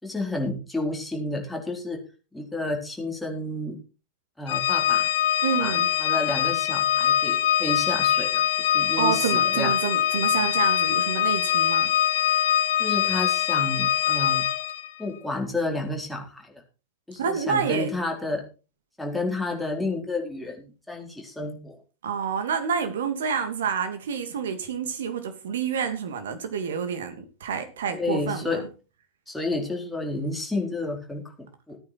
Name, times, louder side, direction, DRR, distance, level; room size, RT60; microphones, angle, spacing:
voice 1, 0.0-2.0 2.3-3.8 4.4-5.1 5.6-9.7 12.8-14.5 15.0-16.6 17.1-18.4 19.0-21.8 27.9-28.6 29.3-31.8, left 2 dB, 5° left, 4.0 m, -31 dB
Organ, 4.5-14.9, left 11 dB, 60° left, 0.9 m, -23 dB
voice 2, 5.4-5.9 9.0-11.9 17.2-17.9 22.0-28.7, right 7 dB, 60° right, 2.6 m, -28 dB
15.0 x 9.5 x 4.5 m
figure-of-eight pair, 90°, 0 cm